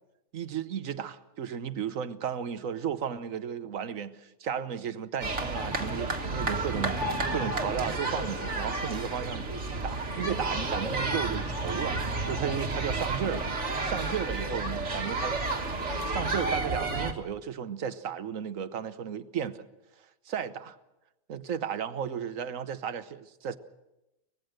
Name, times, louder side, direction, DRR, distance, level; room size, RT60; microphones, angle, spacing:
voice 1, 0.3-9.5 9.8-12.0 12.2-15.4 16.1-19.7 20.3-20.8 21.3-23.6, right 8 dB, 70° right, 1.3 m, -34 dB
sound 1, 5.2-17.1, right 2 dB, 55° right, 1.9 m, -31 dB
24.5 x 19.0 x 6.5 m
omnidirectional pair, 1.4 m